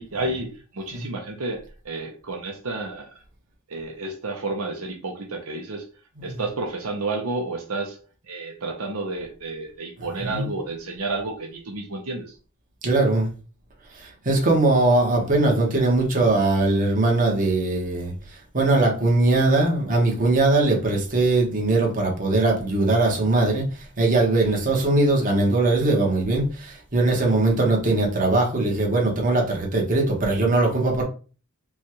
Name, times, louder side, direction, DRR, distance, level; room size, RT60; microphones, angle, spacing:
voice 1, 0.0-3.1 3.7-5.9 6.2-8.0 8.3-12.4 24.5-24.6 27.2-27.4, right 2 dB, 75° right, 0.8 m, -31 dB
voice 2, 12.8-13.3 14.0-18.1 18.5-23.6 24.0-31.0, right 2 dB, 40° right, 1.2 m, -20 dB
5.3 x 2.3 x 3.1 m
head